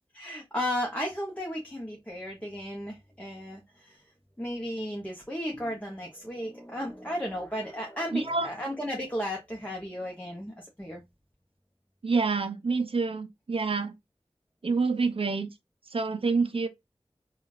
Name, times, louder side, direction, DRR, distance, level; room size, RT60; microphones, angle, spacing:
voice 1, 0.1-11.0, equal, 15° left, 0.8 m, -34 dB
voice 2, 8.1-8.5 12.0-13.9 14.6-15.5 15.9-16.7, right 4 dB, 65° right, 0.5 m, -27 dB
3.7 x 2.3 x 2.5 m
wide cardioid pair, 50°, 10 cm